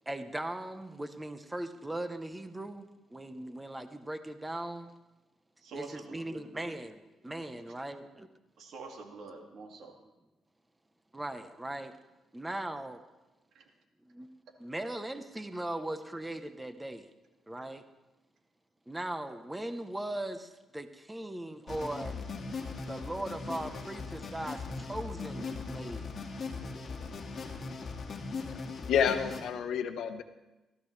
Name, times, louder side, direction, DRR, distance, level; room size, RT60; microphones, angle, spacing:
voice 1, 0.1-4.9 5.7-8.3 11.1-11.9 12.3-13.0 14.1-14.3 14.6-17.1 17.5-17.8 18.9-22.2 22.9-26.1, right 1 dB, 10° right, 9 dB, 0.9 m, -39 dB
voice 2, 5.6-6.7 7.8-7.9 8.6-10.0 13.5-13.7 24.9-25.0, right 4 dB, 70° right, 2 dB, 2.2 m, -47 dB
sound 1, 21.7-29.4, left 4 dB, 45° left, 2.0 m, -39 dB
voice 3, 28.9-30.2, left 8 dB, 75° left, 9 dB, 1.0 m, -29 dB
16.0 x 14.0 x 3.3 m, 1.0 s
cardioid pair, 90°, 0 cm